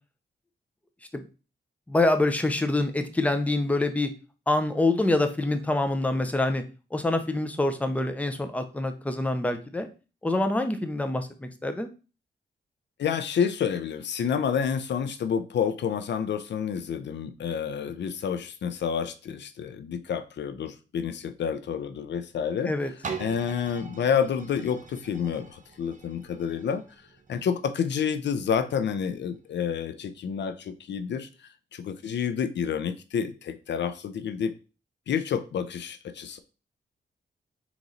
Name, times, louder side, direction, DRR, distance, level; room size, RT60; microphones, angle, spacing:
voice 1, 1.9-4.1 4.5-6.6 6.9-9.9 10.2-11.9 22.7-22.9, left 2 dB, 5° left, 7 dB, 0.6 m, -26 dB
voice 2, 13.0-22.7 23.2-26.8 27.3-31.3 31.7-34.5 35.1-36.4, left 7 dB, 70° left, 10 dB, 0.5 m, -29 dB
sound 1, 23.0-28.8 29.3-29.4, right 5 dB, 40° right, 0.7 m, -42 dB
3.9 x 3.0 x 3.8 m, 0.33 s
cardioid pair, 85°, 19 cm